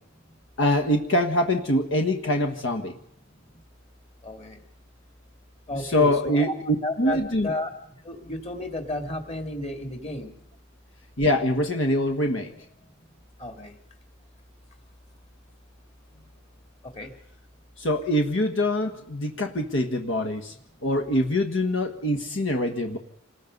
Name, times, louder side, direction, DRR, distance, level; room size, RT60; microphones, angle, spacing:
voice 1, 0.6-2.9 5.7-7.5 11.2-12.5 17.8-20.5 20.8-23.0, left 1 dB, 65° left, 4 dB, 1.5 m, -24 dB
voice 2, 4.2-4.6 5.7-6.5 6.8-7.2 7.4-7.7 8.0-10.3 13.4-13.7 16.9-17.1, left 1 dB, 30° left, 4 dB, 2.6 m, -32 dB
28.0 x 20.0 x 5.4 m, 0.71 s
head